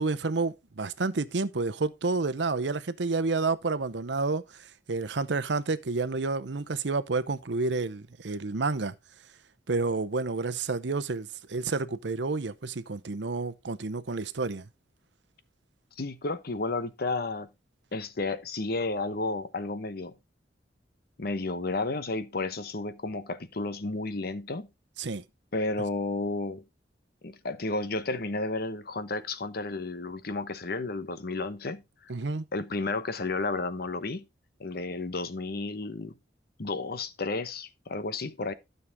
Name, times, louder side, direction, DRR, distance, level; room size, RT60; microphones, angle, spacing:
voice 1, 0.0-8.9 9.7-14.7 25.0-25.2 32.1-32.4, right 3 dB, 80° right, 0.8 m, -30 dB
voice 2, 16.0-17.5 17.9-20.1 21.2-24.7 25.5-26.6 27.2-31.8 32.5-34.2 34.6-36.2 36.6-38.5, left 3 dB, 60° left, 1.0 m, -32 dB
12.5 x 6.7 x 3.5 m
head